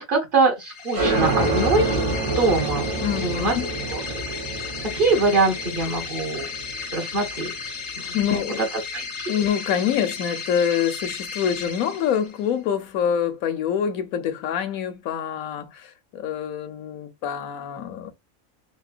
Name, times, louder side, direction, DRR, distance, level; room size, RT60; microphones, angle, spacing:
voice 1, 0.0-2.0 2.3-2.9 3.2-3.5 3.9-4.2 4.8-6.5 6.9-7.5 8.0-8.6 8.9-9.4, right 3 dB, 40° right, 1.2 m, -23 dB
sound 1, 0.6-12.5, left 5 dB, 60° left, 0.4 m, -34 dB
sound 2, 0.9-8.2, right 2 dB, 70° right, 1.4 m, -27 dB
voice 2, 3.0-3.7 8.1-8.7 9.3-18.1, left 8 dB, 85° left, 1.1 m, -26 dB
3.6 x 2.1 x 2.4 m
omnidirectional pair, 1.4 m